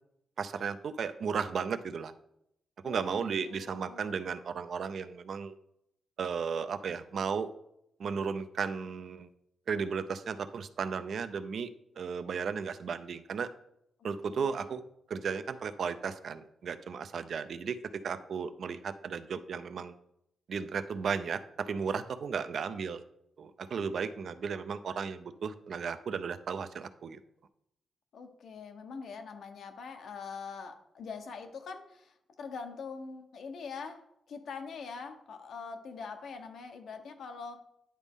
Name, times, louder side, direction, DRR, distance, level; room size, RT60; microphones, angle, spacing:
voice 1, 0.4-2.1 2.8-5.5 6.2-7.5 8.0-9.3 9.7-11.7 12.0-13.5 14.0-14.8 15.1-17.8 18.0-19.9 20.5-23.0 23.4-27.2, right 6 dB, 60° right, 11 dB, 0.4 m, -35 dB
voice 2, 2.8-4.2 14.3-14.7 28.1-37.6, left 5 dB, 70° left, 6 dB, 0.8 m, -43 dB
9.9 x 4.0 x 3.6 m, 0.78 s
cardioid pair, 120°, 0 cm